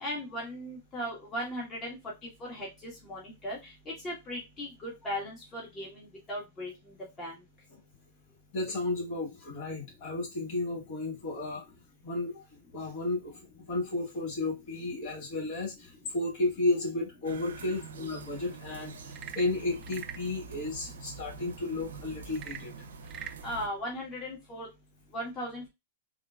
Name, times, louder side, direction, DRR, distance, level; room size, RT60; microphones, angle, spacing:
voice 1, 0.0-2.0 2.5-3.6 4.0-6.0 6.3-6.7 7.2-7.3 23.4-24.7 25.1-25.7, equal, 25° left, 1.3 m, -37 dB
voice 2, 8.5-11.6 12.0-13.4 13.7-22.9, left 2 dB, 50° left, 1.5 m, -33 dB
sound 1, 17.2-23.7, right 4 dB, 80° right, 0.6 m, -45 dB
Frog / Percussion / Wood, 19.0-20.3 22.3-23.4, right 9 dB, 35° right, 0.3 m, -43 dB
3.7 x 2.2 x 2.2 m
hypercardioid pair, 115°, 0 cm